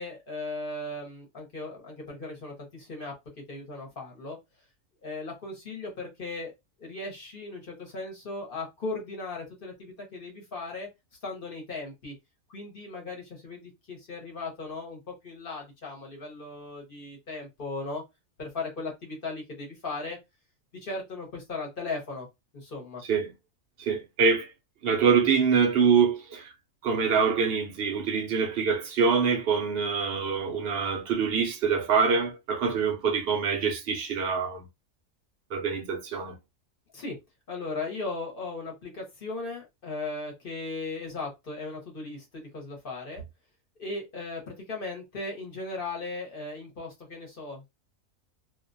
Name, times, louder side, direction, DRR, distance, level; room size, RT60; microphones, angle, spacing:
voice 1, 0.0-3.1 3.5-4.4 5.0-6.5 6.8-10.9 11.2-12.1 12.5-18.0 18.4-20.2 20.8-22.3 22.5-23.0 36.9-37.2 37.5-43.2 43.8-47.7, left 3 dB, 50° left, 0.9 m, -37 dB
voice 2, 23.8-24.5 24.8-26.5 26.8-34.7 35.5-36.4, right 6 dB, 65° right, 0.6 m, -25 dB
2.4 x 2.1 x 2.5 m
omnidirectional pair, 1.4 m